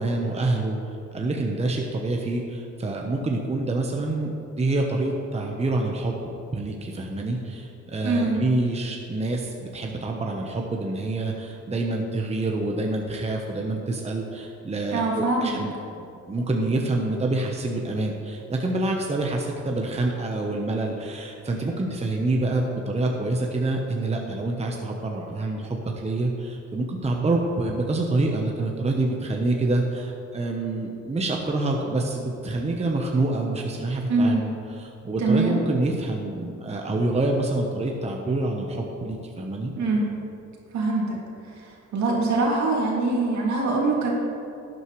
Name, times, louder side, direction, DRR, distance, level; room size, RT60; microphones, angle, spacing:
voice 1, 0.0-6.2 6.5-34.5 34.8-39.7, right 2 dB, 20° right, 0 dB, 1.0 m, -27 dB
voice 2, 8.0-8.4 14.9-15.6 34.1-34.4 35.2-35.6 39.8-40.0 40.7-41.2 41.5-44.1, right 3 dB, 70° right, -3 dB, 2.5 m, -23 dB
12.0 x 9.2 x 3.2 m, 2.6 s
cardioid pair, 90°, 30 cm